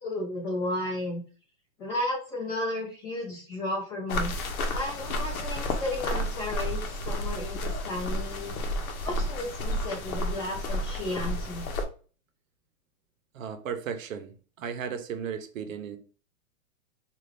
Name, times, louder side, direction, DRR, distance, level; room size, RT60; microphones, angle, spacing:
voice 1, 0.0-1.2 1.8-4.3 4.7-8.5 9.0-11.7, left 1 dB, 20° left, 0.8 m, -33 dB
sound 1, 4.1-11.9, left 1 dB, 85° left, 0.8 m, -31 dB
voice 2, 13.3-16.0, right 7 dB, 70° right, 0.8 m, -36 dB
2.6 x 2.5 x 3.2 m
supercardioid pair, 180°, 41 cm